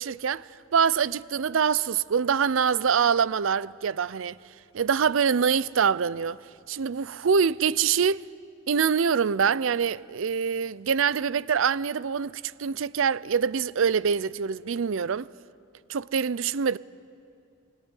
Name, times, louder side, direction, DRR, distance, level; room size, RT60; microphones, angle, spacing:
voice 1, 0.0-4.4 4.7-6.4 6.7-8.2 8.7-15.3 15.9-16.8, right 6 dB, 70° right, 0.5 m, -25 dB
21.0 x 18.5 x 9.9 m
head